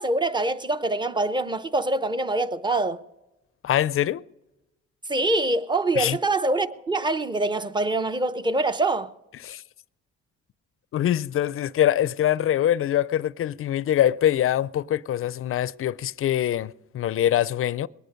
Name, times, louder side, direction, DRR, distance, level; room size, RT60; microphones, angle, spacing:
voice 1, 0.0-3.0 5.1-9.1, right 2 dB, 15° right, 0.7 m, -24 dB
voice 2, 3.6-4.2 6.0-6.2 9.4-9.6 10.9-17.9, left 11 dB, 45° left, 0.4 m, -24 dB
21.0 x 9.2 x 5.2 m
cardioid pair, 90°, 30 cm